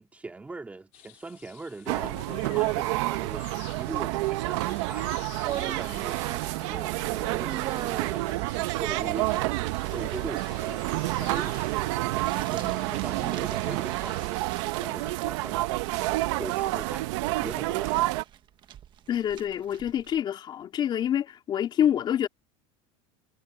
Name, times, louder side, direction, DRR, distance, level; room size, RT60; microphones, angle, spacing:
voice 1, 0.0-2.2 2.4-5.2 5.5-10.9 11.1-11.9 12.3-14.4 14.8-15.8 16.4-17.1 17.4-18.1, right 3 dB, 10° right, 2.5 m, -41 dB
sound 1, 0.9-14.5, left 28 dB, 60° left, 6.4 m, -50 dB
sound 2, 1.9-18.2, right 20 dB, 70° right, 1.1 m, -29 dB
sound 3, 5.5-20.2, right 11 dB, 30° right, 1.3 m, -43 dB
voice 2, 19.1-22.3, left 10 dB, 30° left, 3.6 m, -27 dB
cardioid pair, 160°, 16 cm